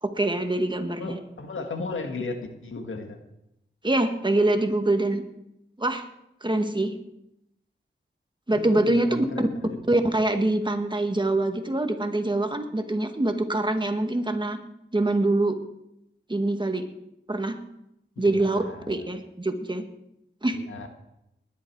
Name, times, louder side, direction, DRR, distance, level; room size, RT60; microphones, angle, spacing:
voice 1, 0.0-1.2 3.8-5.2 5.8-6.0 6.4-6.9 8.5-9.5 9.9-14.6 14.9-15.6 16.3-16.9 17.3-17.6 18.2-19.8 20.4-20.6, right 2 dB, 25° right, 6 dB, 1.7 m, -24 dB
voice 2, 1.0-3.2 8.5-9.8 18.2-19.1 20.5-20.9, left 3 dB, 80° left, 5 dB, 1.8 m, -36 dB
20.0 x 11.0 x 4.7 m, 0.85 s
cardioid pair, 55°, 20 cm